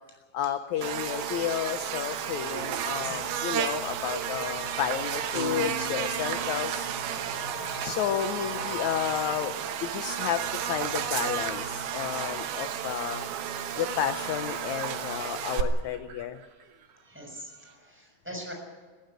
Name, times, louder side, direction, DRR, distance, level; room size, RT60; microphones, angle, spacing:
voice 1, 0.3-6.9 7.8-9.5 9.8-13.3 13.8-16.4, left 10 dB, 75° left, 9 dB, 1.8 m, -32 dB
sound 1, 0.8-17.8, right 7 dB, 65° right, 2.9 m, -51 dB
Buzz, 0.8-15.6, right 8 dB, 90° right, 3.1 m, -32 dB
voice 2, 3.0-3.5 15.8-15.9 17.0-18.5, equal, 5° right, 0 dB, 6.4 m, -43 dB
sound 2, 5.3-8.8, right 1 dB, 60° left, 4.2 m, -42 dB
19.5 x 16.5 x 9.1 m, 1.4 s
omnidirectional pair, 4.2 m